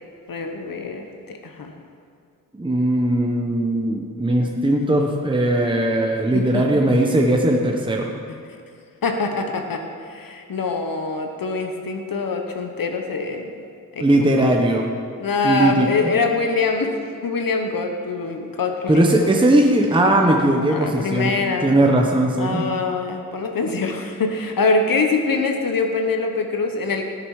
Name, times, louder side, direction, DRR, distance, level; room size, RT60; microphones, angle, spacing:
voice 1, 0.3-1.7 6.3-6.7 8.3-8.4 9.0-13.5 13.9-14.0 14.4-14.5 15.2-16.9 17.2-19.2 20.7-21.7 22.4-27.0, left 3 dB, 65° left, 4 dB, 1.1 m, -24 dB
voice 2, 2.6-8.1 14.0-14.9 15.4-16.1 18.9-21.3 21.6-22.7, right 1 dB, 15° right, 0 dB, 1.0 m, -19 dB
18.0 x 6.8 x 4.8 m, 2.3 s
wide cardioid pair, 85°, 37 cm